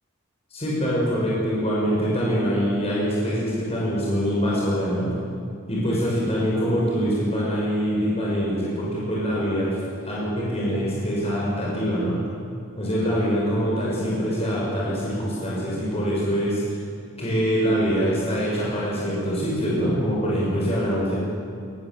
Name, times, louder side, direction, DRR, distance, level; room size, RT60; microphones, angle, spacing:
voice 1, 0.5-5.1 5.7-9.8 10.0-12.2 12.8-16.6 17.2-21.1, equal, 30° left, -6 dB, 5.9 m, -24 dB
21.5 x 21.0 x 7.6 m, 2.3 s
head